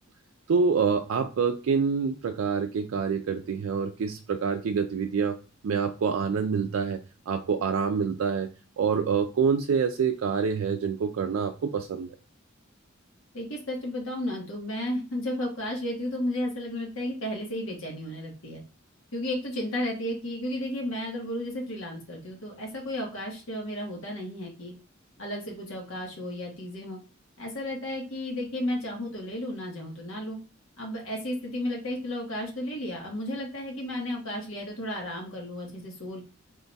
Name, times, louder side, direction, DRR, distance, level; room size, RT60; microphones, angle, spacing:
voice 1, 0.5-5.4 5.6-8.5 8.8-12.1, right 5 dB, 80° right, 4 dB, 0.4 m, -26 dB
voice 2, 13.3-18.6 19.1-24.7 25.2-27.0 27.4-30.4 30.8-36.2, left 1 dB, 75° left, -1 dB, 1.2 m, -33 dB
3.8 x 2.3 x 3.9 m, 0.33 s
head